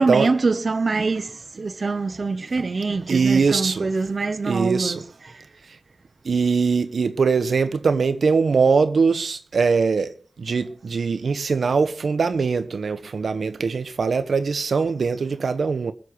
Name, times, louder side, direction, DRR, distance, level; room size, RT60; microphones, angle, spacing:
voice 1, 0.0-5.4, right 3 dB, 50° right, 1.0 m, -24 dB
voice 2, 3.1-3.9 4.4-5.0 6.2-10.1 10.4-15.9, right 5 dB, 75° right, 1.1 m, -21 dB
21.5 x 7.6 x 6.4 m
wide cardioid pair, 105°, 0 cm